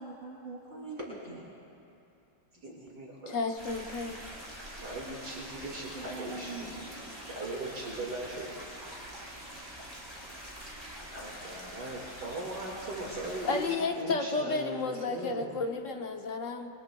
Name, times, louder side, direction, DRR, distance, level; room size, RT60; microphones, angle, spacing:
voice 1, 0.0-1.5 5.9-6.9 7.4-7.5, right 2 dB, 40° right, -6 dB, 2.8 m, -42 dB
voice 2, 2.6-3.4 4.8-8.5 11.1-15.5, right 2 dB, 60° right, -4 dB, 2.5 m, -39 dB
voice 3, 3.3-4.2 13.4-16.7, left 3 dB, 50° left, 4 dB, 1.1 m, -32 dB
sound 1, 3.6-13.7, equal, 15° right, 3.3 m, -45 dB
27.0 x 22.5 x 2.3 m, 2.7 s
omnidirectional pair, 2.0 m